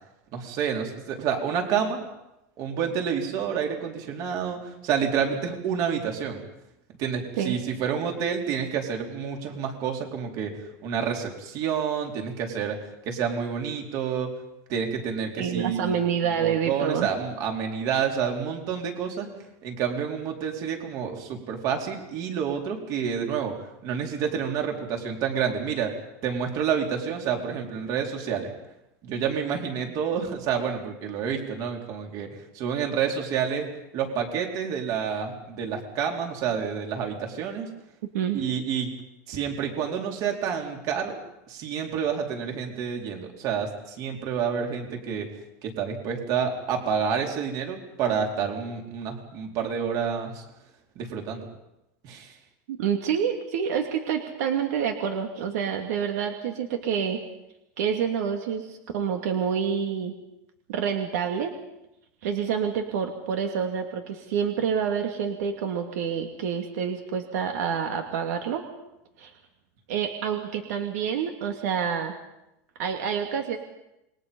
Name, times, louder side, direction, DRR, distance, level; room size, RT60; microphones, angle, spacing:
voice 1, 0.3-2.0 2.6-6.4 7.0-12.8 13.0-14.3 14.7-15.9 16.4-19.3 19.6-23.6 23.8-25.9 26.2-28.5 29.0-37.7 38.3-38.9 39.3-41.2 41.5-45.3 45.6-50.4 51.0-51.5 52.0-52.3, right 7 dB, 45° right, 2 dB, 4.4 m, -29 dB
voice 2, 15.4-17.1 38.1-38.4 52.7-57.2 57.8-60.1 60.7-61.5 62.2-68.6 69.2-69.3 69.9-72.1 72.8-73.6, right 7 dB, 80° right, 4 dB, 2.7 m, -27 dB
28.0 x 21.5 x 5.6 m, 0.88 s
supercardioid pair, 155°, 8 cm